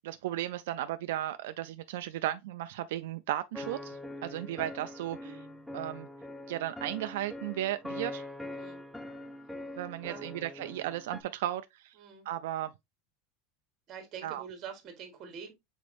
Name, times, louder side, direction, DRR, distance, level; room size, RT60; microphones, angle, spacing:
voice 1, 0.0-5.4 5.7-6.1 6.5-8.3 9.8-11.9 12.3-12.7 14.2-14.4, right 13 dB, 80° right, 0.3 m, -35 dB
sound 1, 3.5-11.2, left 1 dB, ahead, 0.3 m, -43 dB
sound 2, 5.2-6.3, right 2 dB, 45° left, 2.0 m, -57 dB
voice 2, 8.5-8.8 10.0-10.7 12.0-12.3 13.9-15.5, right 7 dB, 30° right, 1.4 m, -46 dB
5.1 x 4.1 x 2.5 m
supercardioid pair, 170°, 0 cm